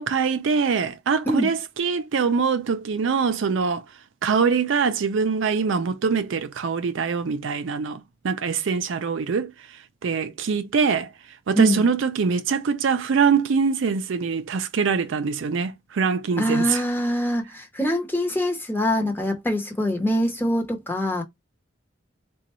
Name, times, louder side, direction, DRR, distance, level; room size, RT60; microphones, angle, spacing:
voice 1, 0.0-3.8 4.2-9.5 10.0-11.1 11.5-16.8, right 5 dB, 70° right, 0.4 m, -23 dB
voice 2, 16.4-21.2, equal, 10° left, 0.8 m, -24 dB
3.8 x 2.2 x 3.0 m
head